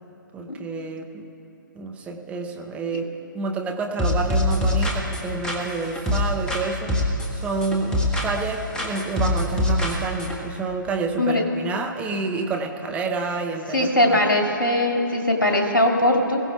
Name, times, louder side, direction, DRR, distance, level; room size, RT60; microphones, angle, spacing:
voice 1, 0.3-1.3 1.7-3.1 3.3-6.9 7.4-14.2, right 3 dB, 10° right, 2 dB, 0.9 m, -28 dB
sound 1, 4.0-6.6 6.9-8.5 8.7-10.4, left 1 dB, 5° left, 1.4 m, -24 dB
voice 2, 13.7-16.4, left 1 dB, 75° left, 0 dB, 2.1 m, -20 dB
21.0 x 17.0 x 2.4 m, 2.9 s
figure-of-eight pair, 130°, 11 cm